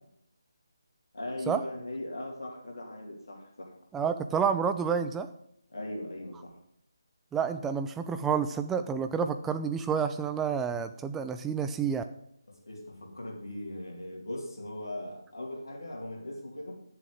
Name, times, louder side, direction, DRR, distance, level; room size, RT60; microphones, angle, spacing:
voice 1, 1.1-3.8 5.7-6.6 12.5-16.7, left 1 dB, 65° left, 0 dB, 3.2 m, -39 dB
voice 2, 3.9-5.3 7.3-12.0, right 6 dB, 10° right, 8 dB, 0.5 m, -29 dB
10.0 x 7.4 x 5.0 m, 0.74 s
figure-of-eight pair, 150°, 2 cm